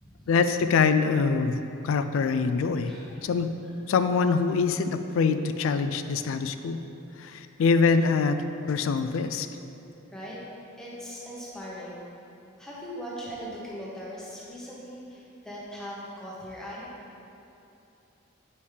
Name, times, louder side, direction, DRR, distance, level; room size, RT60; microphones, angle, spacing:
voice 1, 0.3-1.6 1.8-2.9 3.2-3.5 3.9-6.8 7.2-8.4 8.7-9.5, left 5 dB, 80° left, 9 dB, 0.3 m, -24 dB
voice 2, 2.8-3.3 10.1-10.4 10.8-12.0 12.6-16.9, equal, 5° left, -7 dB, 1.2 m, -40 dB
8.2 x 5.4 x 3.3 m, 2.9 s
head